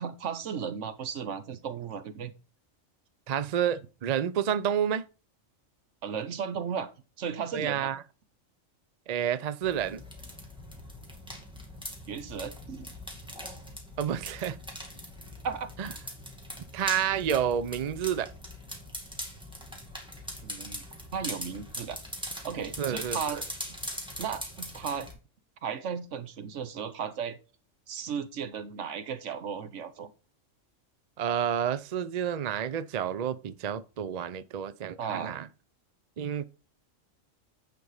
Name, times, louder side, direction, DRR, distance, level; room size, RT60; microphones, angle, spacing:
voice 1, 0.0-2.3 6.0-6.9 7.2-7.9 12.1-12.9 15.4-15.7 20.4-20.8 21.1-22.0 22.4-23.4 24.2-25.1 25.6-27.4 27.9-30.1 35.0-35.4, right 7 dB, 70° right, 1.2 m, -35 dB
voice 2, 3.3-5.0 7.5-8.0 9.1-10.0 14.0-14.6 15.8-15.9 16.7-18.3 22.8-23.4 31.2-35.5 36.2-36.4, right 9 dB, 55° right, 0.4 m, -29 dB
sound 1, 9.6-25.1, equal, 5° right, 2.1 m, -41 dB
9.2 x 5.3 x 4.8 m
omnidirectional pair, 1.3 m